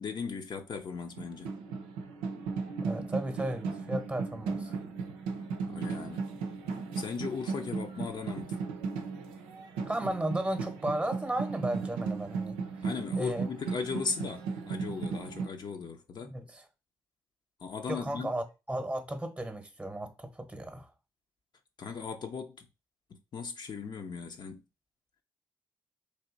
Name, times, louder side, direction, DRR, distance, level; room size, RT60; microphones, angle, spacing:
voice 1, 0.0-1.5 5.6-6.2 7.0-8.5 12.8-16.3 17.6-18.3 21.8-22.7 23.3-24.6, left 5 dB, 50° left, 0.7 m, -37 dB
sound 1, 0.9-15.5, right 4 dB, 80° right, 0.5 m, -36 dB
voice 2, 2.8-4.7 9.9-12.6 13.2-13.5 16.2-16.6 17.9-20.9, right 1 dB, 15° right, 0.9 m, -34 dB
3.4 x 2.7 x 3.9 m
hypercardioid pair, 40°, 9 cm